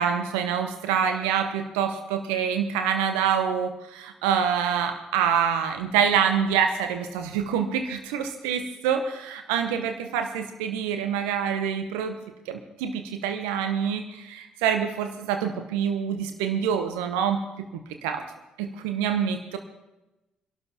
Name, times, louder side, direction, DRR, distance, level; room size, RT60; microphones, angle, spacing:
voice 1, 0.0-12.2 12.5-17.4 18.0-18.3 18.6-19.6, right 7 dB, 70° right, 7 dB, 0.9 m, -26 dB
25.5 x 12.0 x 2.9 m, 0.98 s
figure-of-eight pair, 50°, 4 cm